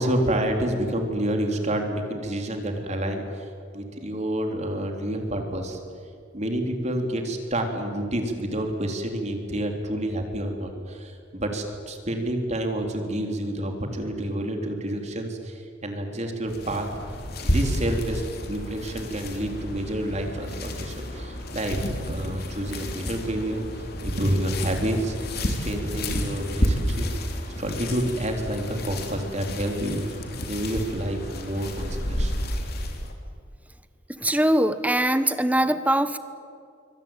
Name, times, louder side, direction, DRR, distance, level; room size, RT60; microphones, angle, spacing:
voice 1, 0.0-3.4 3.7-5.8 6.3-16.9 17.4-21.8 22.0-23.6 24.0-27.1 27.6-30.2 30.5-32.3, right 1 dB, 35° right, 4 dB, 3.6 m, -28 dB
sound 1, 16.5-33.1, equal, 55° left, 3.4 m, -31 dB
voice 2, 34.2-36.2, right 1 dB, 10° right, 11 dB, 1.3 m, -22 dB
25.5 x 24.5 x 9.1 m, 2.3 s
head